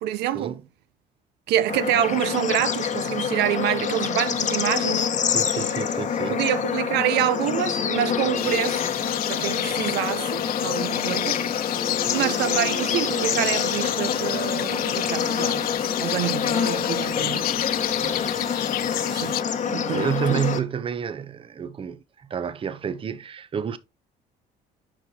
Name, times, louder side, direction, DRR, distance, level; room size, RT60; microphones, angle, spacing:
voice 1, 0.0-0.6 1.5-5.1 6.3-8.8 9.3-11.4 12.1-17.5 19.1-19.4 19.7-20.4, right 12 dB, 80° right, 0.6 m, -26 dB
Bird / Insect / Frog, 1.7-20.6, left 7 dB, 45° left, 1.0 m, -26 dB
voice 2, 5.3-6.5 18.0-18.3 19.9-23.8, right 8 dB, 30° right, 0.7 m, -29 dB
sound 1, 7.3-21.0, left 1 dB, ahead, 1.3 m, -42 dB
sound 2, 8.4-19.4, left 15 dB, 60° left, 0.4 m, -30 dB
8.8 x 5.9 x 2.7 m
cardioid pair, 110°, 17 cm